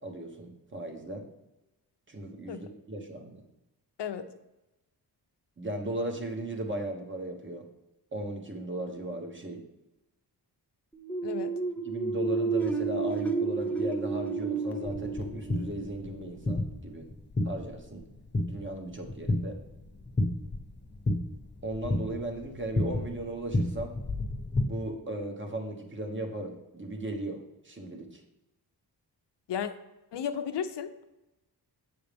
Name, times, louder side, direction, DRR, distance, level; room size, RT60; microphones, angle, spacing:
voice 1, 0.0-1.3 2.1-3.4 5.6-7.6 8.1-9.6 11.8-17.1 17.4-18.0 18.5-19.6 21.6-23.9 24.6-28.2, right 1 dB, 30° right, 3 dB, 1.2 m, -37 dB
voice 2, 4.0-4.3 11.2-11.5 29.5-29.7 30.1-31.0, left 8 dB, 80° left, 7 dB, 0.7 m, -34 dB
sound 1, 10.9-16.6, right 4 dB, 5° left, 0.5 m, -31 dB
sound 2, 14.8-24.6, left 1 dB, 25° left, 1.1 m, -32 dB
7.9 x 6.8 x 3.4 m, 0.97 s
wide cardioid pair, 120°, 41 cm